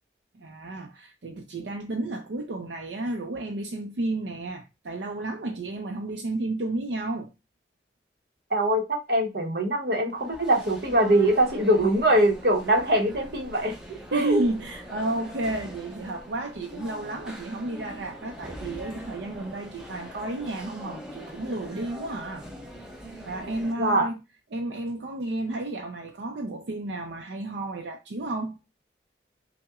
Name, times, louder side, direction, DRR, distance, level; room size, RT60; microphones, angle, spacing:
voice 1, 0.3-7.3 14.1-22.5 23.2-24.2 24.5-28.6, right 2 dB, 75° right, 0.5 m, -32 dB
voice 2, 8.5-14.4 23.8-24.1, right 1 dB, 60° right, 0.9 m, -23 dB
sound 1, 10.1-23.7, equal, 5° right, 0.6 m, -43 dB
5.6 x 2.1 x 2.3 m
head